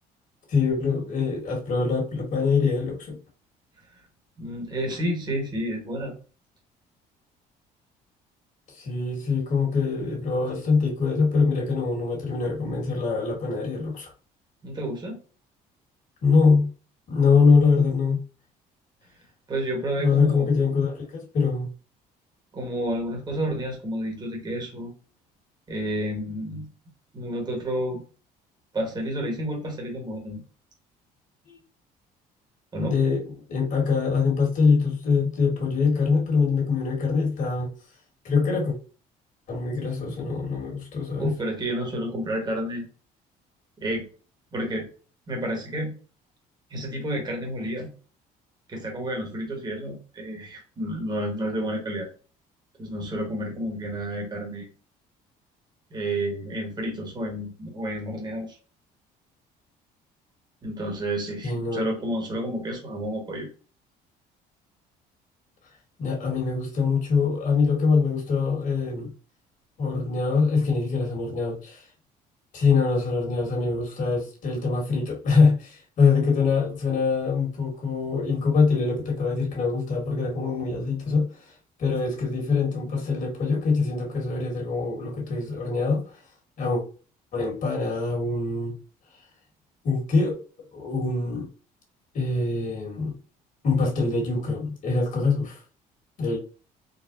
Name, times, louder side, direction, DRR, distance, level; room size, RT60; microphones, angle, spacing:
voice 1, 0.5-3.2 8.7-14.1 16.2-16.7 17.1-18.2 20.0-21.7 31.5-31.6 32.8-37.7 38.2-38.8 39.5-41.3 61.4-61.8 66.0-69.1 69.8-71.8 72.5-81.5 81.8-86.0 86.6-86.8 87.3-88.7 89.8-90.4 90.7-91.5 92.1-93.1 93.6-95.6 96.2-96.4, left 4 dB, 55° left, 1.7 m, -24 dB
voice 2, 4.4-6.1 14.6-15.2 19.5-20.5 22.5-24.9 25.7-26.7 27.1-28.0 28.7-30.4 32.7-33.0 41.2-42.8 43.8-44.1 44.5-44.9 45.3-45.9 46.7-47.9 48.7-52.1 52.8-54.7 55.9-58.6 60.6-63.5, right 1 dB, 25° right, 1.4 m, -30 dB
4.1 x 2.3 x 2.6 m
cardioid pair, 105°, 16 cm